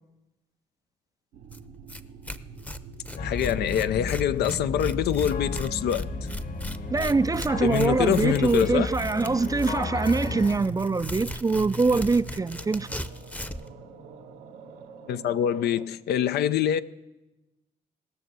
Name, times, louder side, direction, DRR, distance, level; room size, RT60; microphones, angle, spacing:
sound 1, 1.3-15.9, right 4 dB, 80° right, 1.0 m, -43 dB
Tearing, 1.5-1.6 1.9-2.0 2.3-13.7, left 1 dB, 10° left, 0.7 m, -38 dB
voice 1, 3.1-6.1 7.6-8.9 15.1-16.8, left 10 dB, 75° left, 0.5 m, -25 dB
sound 2, 3.2-10.6, left 3 dB, 55° left, 1.5 m, -33 dB
voice 2, 6.9-12.9, right 3 dB, 20° right, 0.4 m, -24 dB
18.0 x 6.8 x 6.2 m
hypercardioid pair, 45°, 17 cm